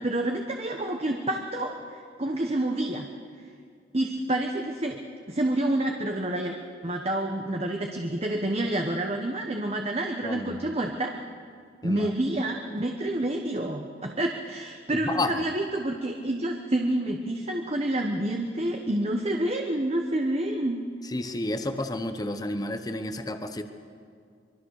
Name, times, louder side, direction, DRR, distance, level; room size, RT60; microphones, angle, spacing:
voice 1, 0.0-3.1 3.9-5.0 5.3-6.5 6.8-11.2 11.8-20.8, right 1 dB, 35° right, 3 dB, 1.2 m, -28 dB
voice 2, 10.2-10.6 11.8-12.1 14.9-15.4 21.0-23.6, left 1 dB, 20° left, 8 dB, 1.1 m, -31 dB
25.0 x 23.0 x 6.6 m, 2.2 s
head